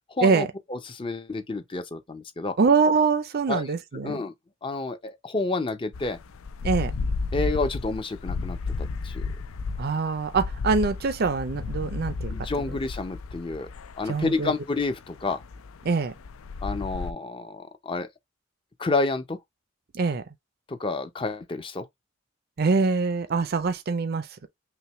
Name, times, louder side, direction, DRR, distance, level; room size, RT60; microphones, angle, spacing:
voice 1, 0.2-2.5 3.5-3.6 4.0-4.3 4.6-6.2 7.3-8.6 9.0-9.3 12.3-13.7 14.0-15.4 16.6-18.1 18.8-19.4 20.7-21.9, left 3 dB, 25° left, 0.5 m, -29 dB
voice 2, 2.6-4.2 6.6-6.9 9.8-12.6 14.1-14.5 15.8-16.1 19.9-20.2 22.6-24.3, right 4 dB, 50° right, 0.5 m, -24 dB
sound 1, 5.9-17.1, left 4 dB, 80° left, 0.5 m, -33 dB
5.7 x 2.2 x 3.0 m
head